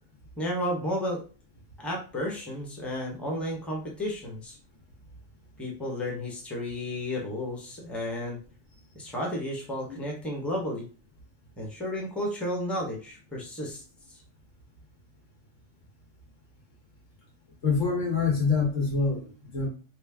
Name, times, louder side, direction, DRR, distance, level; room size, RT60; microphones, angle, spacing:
voice 1, 0.4-1.2 1.8-4.6 5.6-8.4 8.9-10.9 11.6-13.8 14.1-14.2, left 1 dB, ahead, -1 dB, 0.8 m, -32 dB
voice 2, 17.6-19.7, left 4 dB, 85° left, -1 dB, 1.6 m, -25 dB
3.2 x 2.7 x 3.5 m, 0.36 s
omnidirectional pair, 1.3 m